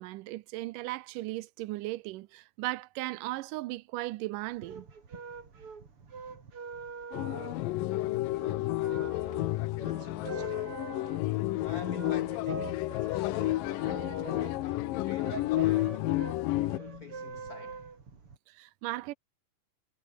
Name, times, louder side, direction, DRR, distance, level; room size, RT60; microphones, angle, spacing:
voice 1, 0.0-4.9 9.1-9.2 18.5-19.1, right 18 dB, 80° right, 2.2 m, -37 dB
sound 1, 4.4-18.4, right 5 dB, 40° right, 4.0 m, -45 dB
sound 2, 7.1-16.8, left 17 dB, 85° left, 2.6 m, -31 dB
voice 2, 9.8-10.8 11.6-16.1 16.6-17.9, left 6 dB, 70° left, 0.8 m, -44 dB
omnidirectional pair, 3.8 m